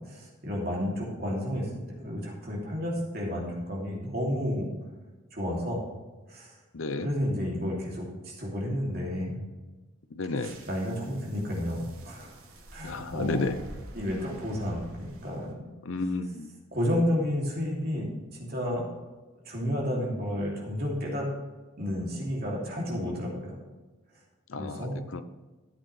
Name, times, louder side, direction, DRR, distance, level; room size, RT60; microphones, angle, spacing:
voice 1, 0.0-4.7 5.3-5.8 6.3-6.5 7.0-9.5 10.3-12.3 12.7-13.5 13.9-15.6 16.7-18.1 18.4-18.9 19.4-21.3 21.8-23.5 24.6-25.0, equal, 45° right, -3 dB, 2.7 m, -31 dB
voice 2, 6.7-7.1 10.1-10.5 12.8-13.6 15.9-16.5 24.5-25.2, left 3 dB, 75° left, 11 dB, 0.7 m, -32 dB
sound 1, 10.4-15.5, right 1 dB, 85° right, 1.6 m, -48 dB
13.0 x 8.0 x 3.3 m, 1.2 s
head